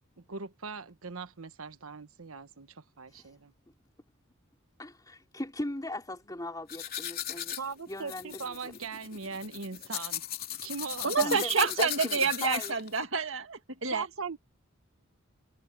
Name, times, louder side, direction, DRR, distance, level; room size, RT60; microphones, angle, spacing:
voice 1, 0.3-3.5 7.6-10.2 10.6-11.4 13.9-14.4, right 4 dB, 80° right, 1.1 m, -40 dB
voice 2, 4.8-7.6 7.9-8.7 11.2-12.7, left 1 dB, 20° left, 2.8 m, -38 dB
sound 1, 6.7-13.0, left 11 dB, 45° left, 3.5 m, -37 dB
voice 3, 11.0-14.1, right 5 dB, 65° right, 2.0 m, -28 dB
head